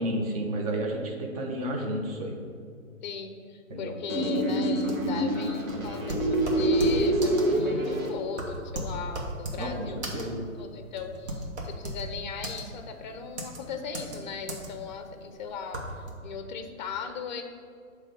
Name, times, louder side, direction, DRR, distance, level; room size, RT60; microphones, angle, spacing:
voice 1, 0.0-2.4 3.7-4.0 9.6-10.4, right 1 dB, 30° right, 1 dB, 0.7 m, -31 dB
voice 2, 3.0-10.0 10.5-17.4, left 6 dB, 35° left, 7 dB, 0.5 m, -38 dB
sound 1, 4.1-8.1, right 1 dB, 75° right, 1.4 m, -26 dB
sound 2, 4.8-16.1, right 1 dB, 55° right, 1.4 m, -36 dB
7.2 x 3.1 x 5.0 m, 2.3 s
hypercardioid pair, 140°, 40 cm